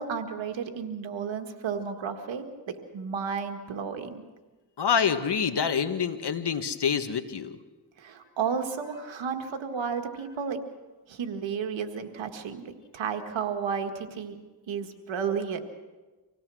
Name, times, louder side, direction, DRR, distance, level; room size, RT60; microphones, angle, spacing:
voice 1, 0.0-4.2 8.0-10.6 11.1-14.4 14.7-15.6, right 6 dB, 90° right, 5 dB, 1.8 m, -32 dB
voice 2, 4.8-7.6, left 7 dB, 65° left, 8 dB, 1.8 m, -26 dB
25.5 x 17.5 x 6.3 m, 1.2 s
cardioid pair, 50°, 44 cm